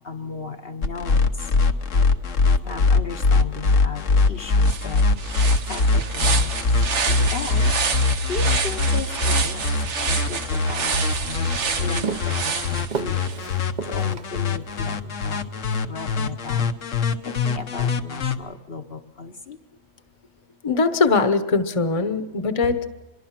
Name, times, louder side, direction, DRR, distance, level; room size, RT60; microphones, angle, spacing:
voice 1, 0.0-1.3 2.6-4.0 4.3-5.0 5.7-6.5 7.3-7.7 8.3-9.7 10.1-10.9 11.3-11.5 11.8-13.2 13.9-15.0 15.2-15.4 15.9-16.7 17.3-19.6, left 4 dB, 55° left, 4 dB, 1.1 m, -35 dB
sound 1, 0.8-18.3, left 3 dB, 80° left, 1.4 m, -22 dB
sound 2, 4.2-4.3 4.6-13.4, right 5 dB, 70° right, 1.4 m, -28 dB
Walk footsteps, 10.4-14.8, right 5 dB, 40° right, 1.0 m, -34 dB
voice 2, 20.6-22.9, left 4 dB, 30° left, 9 dB, 1.0 m, -21 dB
25.0 x 22.0 x 5.9 m, 1.1 s
omnidirectional pair, 1.3 m